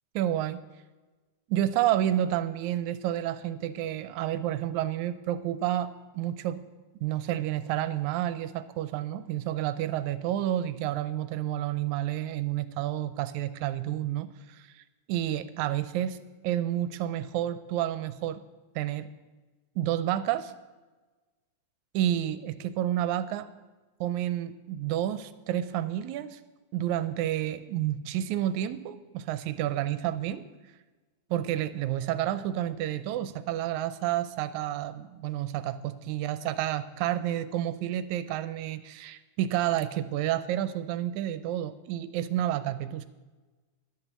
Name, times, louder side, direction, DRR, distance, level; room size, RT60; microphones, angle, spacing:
voice 1, 0.2-0.6 1.5-6.6 7.0-16.2 16.4-18.4 18.8-19.1 19.8-20.5 21.9-23.5 24.0-26.4 26.7-30.4 31.3-43.1, right 12 dB, 80° right, 13 dB, 2.0 m, -30 dB
11.0 x 8.1 x 7.3 m, 1.2 s
omnidirectional pair, 3.4 m